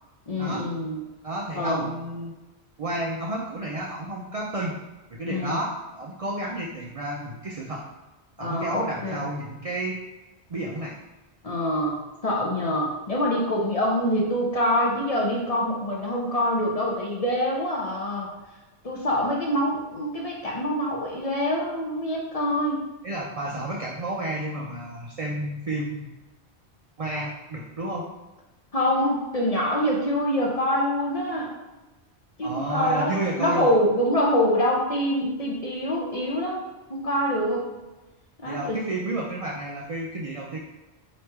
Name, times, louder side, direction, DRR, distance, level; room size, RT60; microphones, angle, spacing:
voice 1, 0.3-1.0 1.5-1.9 5.3-5.6 8.4-9.3 11.4-18.3 18.8-22.8 28.7-31.5 32.4-33.1 33.4-36.6 36.9-37.7 38.4-38.8, equal, 40° left, -3 dB, 0.7 m, -25 dB
voice 2, 1.2-2.3 2.8-4.8 5.1-7.8 8.4-10.0 10.5-11.0 23.0-26.1 27.0-28.1 32.4-33.7 38.4-40.6, right 1 dB, 50° right, -2 dB, 0.4 m, -31 dB
3.2 x 2.9 x 4.5 m, 1.1 s
omnidirectional pair, 1.1 m